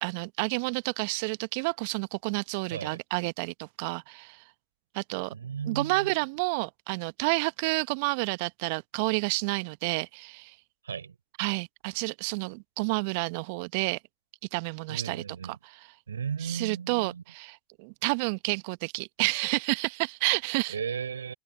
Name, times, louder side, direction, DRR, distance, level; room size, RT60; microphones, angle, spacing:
voice 1, 0.0-4.4 4.9-5.3 5.7-10.5 11.4-14.0 14.5-15.9 16.4-20.8, right 30 dB, 60° right, 1.2 m, -30 dB
voice 2, 5.3-6.1 10.8-11.1 14.9-15.6 16.1-17.2 20.7-21.3, right 7 dB, 80° right, 3.8 m, -35 dB
figure-of-eight pair, 70°, 0 cm